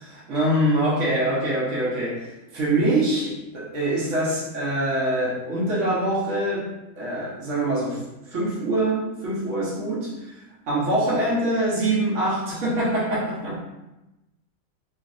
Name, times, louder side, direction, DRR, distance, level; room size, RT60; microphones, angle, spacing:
voice 1, 0.1-8.0 8.3-10.3 10.7-13.7, right 1 dB, 55° right, -6 dB, 1.0 m, -24 dB
3.1 x 2.5 x 2.5 m, 0.97 s
omnidirectional pair, 1.9 m